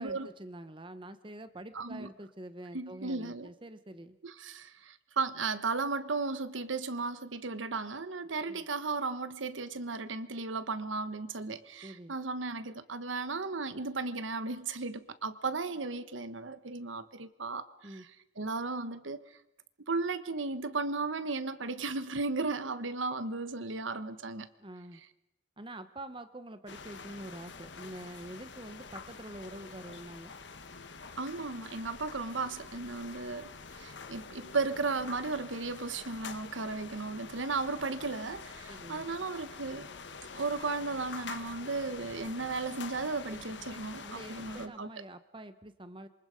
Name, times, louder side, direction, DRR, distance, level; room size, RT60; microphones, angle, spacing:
voice 1, 0.0-4.2 8.5-8.6 11.8-12.1 17.8-18.1 24.6-25.0 25.6-30.3 38.7-39.1 44.0-46.1, right 1 dB, 25° right, 11 dB, 1.0 m, -46 dB
voice 2, 1.7-2.1 2.7-3.5 4.2-18.0 18.4-19.2 19.9-24.5 31.2-33.5 33.8-39.9 40.3-44.9, right 3 dB, 85° right, 12 dB, 1.3 m, -35 dB
sound 1, 26.7-44.7, left 5 dB, 65° left, 1.3 m, -46 dB
27.0 x 24.0 x 5.2 m, 0.84 s
head